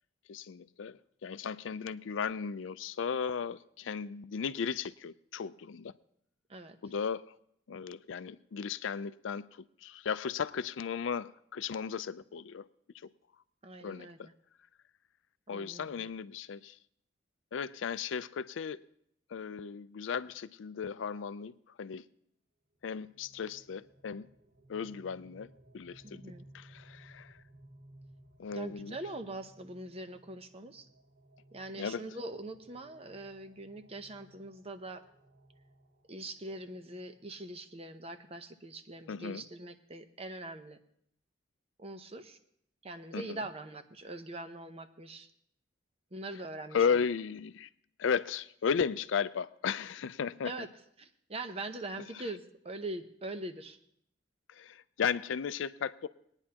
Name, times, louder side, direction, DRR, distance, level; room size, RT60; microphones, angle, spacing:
voice 1, 0.3-5.9 6.8-7.3 7.7-12.6 13.8-14.3 15.5-16.8 17.5-18.8 19.3-21.5 21.8-22.1 22.8-24.3 24.7-25.5 25.7-26.2 26.5-27.4 28.4-29.0 31.8-32.0 39.1-39.4 43.1-43.4 46.7-47.7 48.0-50.5 52.1-52.2 54.5-56.1, left 6 dB, 75° left, 0.4 m, -35 dB
voice 2, 13.6-14.3 15.5-16.1 26.0-26.5 28.5-30.9 31.5-35.0 36.1-40.8 41.8-42.4 42.8-45.3 46.1-47.0 50.4-50.7 51.0-53.8, right 2 dB, 30° right, 0.7 m, -43 dB
sound 1, 22.7-37.4, right 1 dB, 85° right, 3.2 m, -60 dB
20.0 x 9.8 x 2.9 m
head